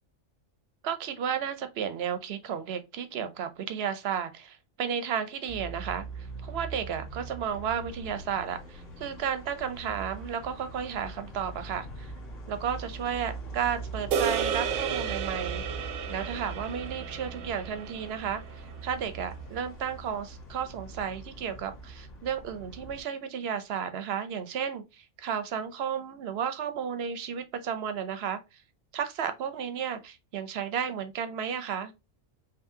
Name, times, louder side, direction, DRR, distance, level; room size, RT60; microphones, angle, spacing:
voice 1, 0.8-12.1 12.5-15.6 16.1-28.6 28.9-31.9, right 8 dB, 60° right, 0.8 m, -33 dB
sound 1, 5.5-23.0, right 3 dB, 65° left, 1.7 m, -42 dB
sound 2, 14.1-18.6, right 7 dB, 90° right, 1.0 m, -33 dB
5.1 x 2.6 x 2.7 m
omnidirectional pair, 1.4 m